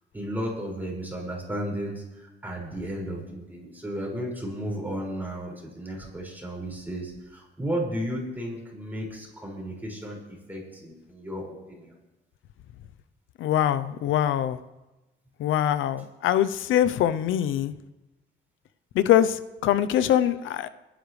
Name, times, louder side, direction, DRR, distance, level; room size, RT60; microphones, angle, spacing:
voice 1, 0.1-11.9, equal, 10° right, -2 dB, 5.6 m, -34 dB
voice 2, 13.4-14.6 15.4-17.7 18.9-20.7, left 11 dB, 80° left, 14 dB, 0.6 m, -23 dB
29.5 x 10.0 x 3.3 m, 1.0 s
cardioid pair, 90°, 20 cm